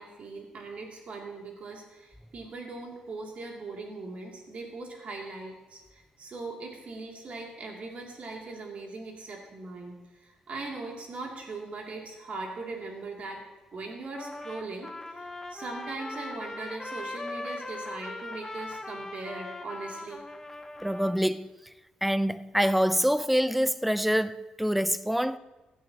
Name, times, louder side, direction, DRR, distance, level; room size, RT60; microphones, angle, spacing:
voice 1, 0.0-9.9 10.2-13.4 13.7-20.2, right 3 dB, 55° right, 2.7 m, -40 dB
Trumpet, 14.1-21.3, left 2 dB, 15° left, 0.8 m, -40 dB
voice 2, 20.8-21.5 22.0-25.4, equal, 5° right, 0.4 m, -26 dB
16.5 x 11.5 x 3.0 m
cardioid pair, 100°, 3 cm